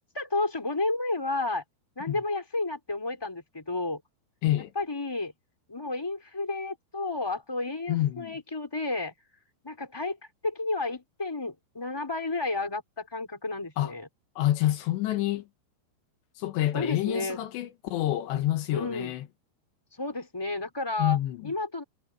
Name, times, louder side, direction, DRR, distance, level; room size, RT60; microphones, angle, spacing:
voice 1, 0.1-1.6 2.0-4.0 4.7-5.3 5.7-9.1 9.6-10.2 10.4-14.1 16.7-17.4 18.7-19.1 20.0-21.2 21.4-21.8, left 2 dB, 5° left, 4.1 m, -31 dB
voice 2, 7.9-8.3 13.8-13.9 14.4-15.4 16.4-19.2 21.0-21.5, left 14 dB, 80° left, 3.4 m, -27 dB
omnidirectional pair, 5.0 m